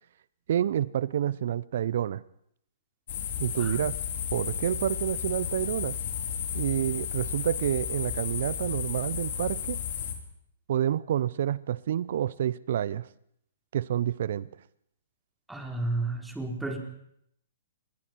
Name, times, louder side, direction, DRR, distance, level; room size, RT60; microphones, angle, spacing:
voice 1, 0.5-2.2 3.4-4.0 4.3-6.0 6.5-9.8 10.7-13.1 13.7-14.5, right 10 dB, 60° right, 0.7 m, -28 dB
sound 1, 3.1-10.1, left 8 dB, 55° left, 4.0 m, -33 dB
voice 2, 15.5-16.8, right 2 dB, 5° right, 4.2 m, -32 dB
27.0 x 21.5 x 4.7 m
hypercardioid pair, 120°, 0 cm